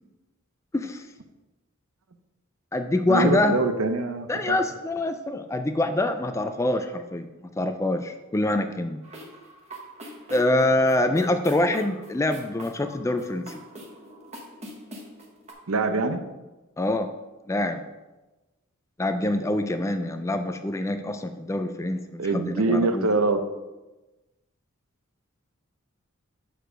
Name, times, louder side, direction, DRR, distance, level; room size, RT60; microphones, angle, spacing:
voice 1, 0.7-1.0 2.7-3.5 4.3-7.3 7.6-9.0 10.3-13.6 16.8-17.1 17.5-17.8 19.0-23.1, left 1 dB, 15° left, 8 dB, 0.3 m, -25 dB
voice 2, 3.1-4.6 15.7-16.3 22.2-23.5, right 3 dB, 80° right, 8 dB, 0.7 m, -24 dB
sound 1, 9.0-15.5, equal, 30° right, 1.2 m, -43 dB
6.9 x 4.7 x 5.0 m, 1.1 s
head